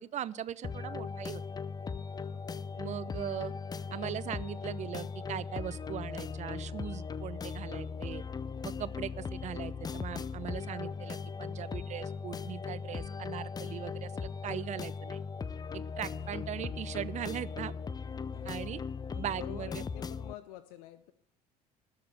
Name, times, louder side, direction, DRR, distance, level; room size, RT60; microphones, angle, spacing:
voice 1, 0.0-1.4 2.8-3.5 3.9-8.2 8.6-15.2 15.7-17.7 18.4-18.8 19.2-19.8, right 11 dB, 35° right, 17 dB, 0.6 m, -40 dB
sound 1, 0.6-20.3, left 5 dB, 20° left, 0.5 m, -38 dB
voice 2, 16.1-16.5 18.3-21.1, left 13 dB, 60° left, 13 dB, 0.7 m, -48 dB
19.5 x 6.8 x 7.0 m, 0.74 s
figure-of-eight pair, 60°, 20 cm